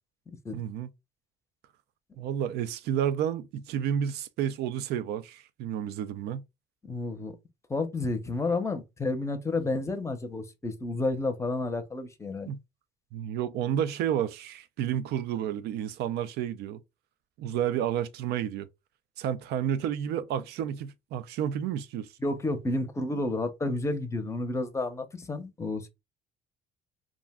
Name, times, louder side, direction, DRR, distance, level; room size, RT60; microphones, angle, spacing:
voice 1, 0.5-0.9 2.2-6.4 12.5-12.6 13.1-16.8 17.4-18.7 19.2-22.1, right 9 dB, 75° right, 0.4 m, -31 dB
voice 2, 6.8-7.4 7.7-12.5 22.2-25.9, left 2 dB, 15° left, 0.6 m, -31 dB
2.4 x 2.1 x 3.5 m
cardioid pair, 110°, 17 cm